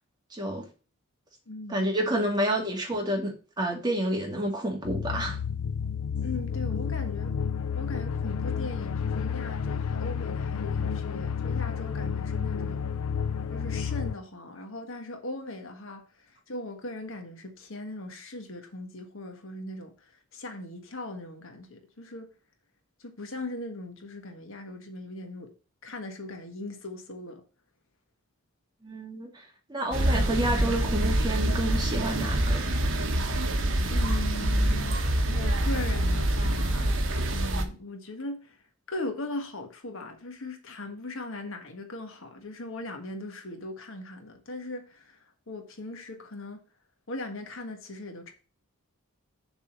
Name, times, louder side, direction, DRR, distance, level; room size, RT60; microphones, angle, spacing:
voice 1, 0.3-0.7 1.7-5.4 28.8-32.6, right 1 dB, 20° right, 2.2 m, -29 dB
voice 2, 1.5-1.9 6.2-7.3 7.7-12.9 13.5-22.3 23.0-25.5 25.8-27.4 33.9-36.9 37.3-38.6 38.9-46.6 47.1-48.3, left 2 dB, 65° left, 1.5 m, -39 dB
sound 1, 4.8-14.2, left 6 dB, 85° left, 0.5 m, -31 dB
sound 2, 29.9-37.6, right 1 dB, 55° right, 1.3 m, -26 dB
7.2 x 4.0 x 6.7 m
head